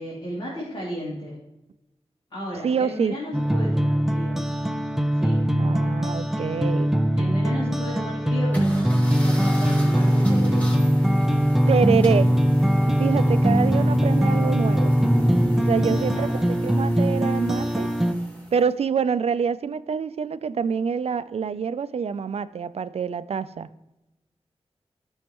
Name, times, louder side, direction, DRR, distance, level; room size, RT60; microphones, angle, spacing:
voice 1, 0.0-1.4 2.3-4.5 5.1-5.5 7.2-10.7 15.9-16.4, left 1 dB, 50° left, -7 dB, 2.9 m, -34 dB
voice 2, 2.6-3.2 5.6-6.9 11.7-12.3 13.0-14.9 15.6-16.3 16.6-17.9 18.5-23.7, right 6 dB, 75° right, 14 dB, 0.4 m, -26 dB
sound 1, 3.3-18.1, equal, 5° right, 0.5 m, -21 dB
sound 2, 8.5-18.7, equal, 15° left, 2.4 m, -41 dB
12.0 x 6.4 x 3.0 m, 0.95 s
wide cardioid pair, 105°, 11 cm